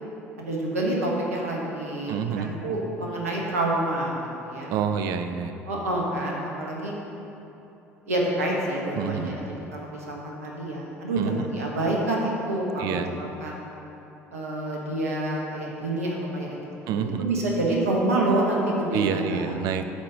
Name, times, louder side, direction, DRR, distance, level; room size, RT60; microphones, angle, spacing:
voice 1, 0.4-4.7 5.7-6.9 8.1-13.7 14.3-16.6 16.9-19.6, right 1 dB, 75° right, -2 dB, 1.3 m, -28 dB
voice 2, 2.1-2.5 4.7-5.5 9.0-9.4 11.2-11.5 12.8-13.1 16.9-17.3 18.9-19.9, right 7 dB, 55° right, 9 dB, 0.5 m, -28 dB
8.2 x 4.9 x 6.3 m, 3.0 s
figure-of-eight pair, 60°, 8 cm